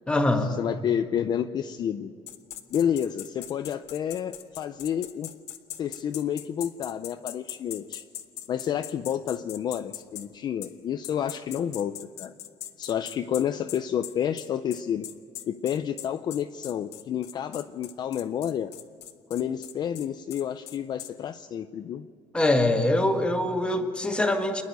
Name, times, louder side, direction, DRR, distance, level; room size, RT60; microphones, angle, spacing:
voice 1, 0.1-0.6 22.3-24.6, left 1 dB, 10° left, 4 dB, 1.5 m, -23 dB
voice 2, 0.6-2.1 2.7-5.3 5.8-8.0 8.5-12.3 12.8-15.1 15.4-18.7 19.3-22.1, left 9 dB, 35° left, 9 dB, 0.5 m, -30 dB
sound 1, 2.3-10.3 10.6-10.7 11.0-21.1, left 12 dB, 70° left, 1.0 m, -40 dB
28.5 x 10.5 x 9.3 m, 2.3 s
cardioid pair, 165°, 12 cm